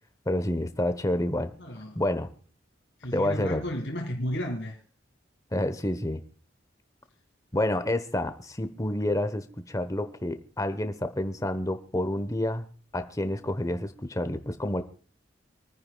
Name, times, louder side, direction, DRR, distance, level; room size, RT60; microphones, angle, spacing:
voice 1, 0.3-1.5 2.0-2.3 3.1-3.6 5.5-6.2 7.5-12.7 12.9-14.8, left 1 dB, 20° left, 10 dB, 1.1 m, -29 dB
voice 2, 1.6-2.0 3.0-4.8, equal, 65° left, 2 dB, 2.0 m, -33 dB
27.0 x 9.7 x 2.3 m, 0.42 s
head